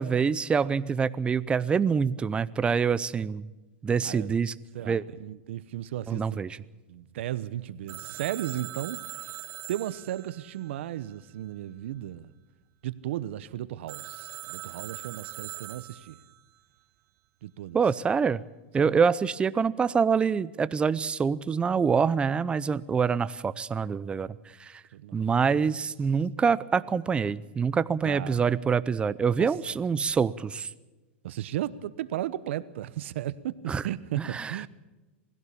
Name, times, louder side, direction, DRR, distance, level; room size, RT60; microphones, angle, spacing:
voice 1, 0.0-3.5 3.8-4.5 4.9-5.0 6.1-6.6 17.7-18.4 18.7-24.8 25.1-30.7 33.7-33.8 34.2-34.6, right 6 dB, 15° right, 0.6 m, -26 dB
voice 2, 4.7-6.4 6.9-9.3 9.7-12.3 12.8-16.2 17.4-17.8 18.8-19.0 24.9-25.2 25.5-25.6 28.0-28.5 29.4-29.5 31.2-34.7, right 13 dB, 75° right, 1.0 m, -35 dB
Telephone, 7.9-11.5 13.9-16.4, right 17 dB, 45° right, 1.1 m, -42 dB
21.0 x 16.5 x 8.6 m
supercardioid pair, 130°, 6 cm